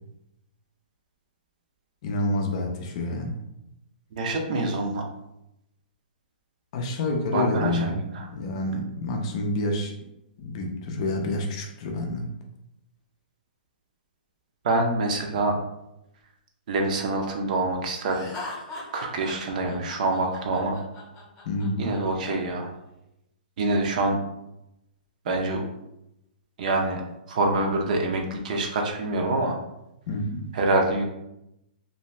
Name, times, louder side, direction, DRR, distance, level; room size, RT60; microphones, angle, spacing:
voice 1, 2.0-3.4 6.7-8.0 8.3-9.9 10.4-12.3 21.4-21.9 30.1-30.4, left 2 dB, 35° left, 3 dB, 0.5 m, -28 dB
voice 2, 4.1-5.0 7.3-8.3 14.6-15.6 16.7-18.3 18.9-20.8 21.8-22.7 23.6-24.2 25.2-25.6 26.6-27.0 27.3-29.6 30.5-31.0, right 2 dB, 50° right, 2 dB, 0.5 m, -25 dB
Laughter, 18.1-22.0, left 2 dB, 15° left, 0.8 m, -40 dB
2.6 x 2.2 x 3.0 m, 0.87 s
hypercardioid pair, 165°, 5 cm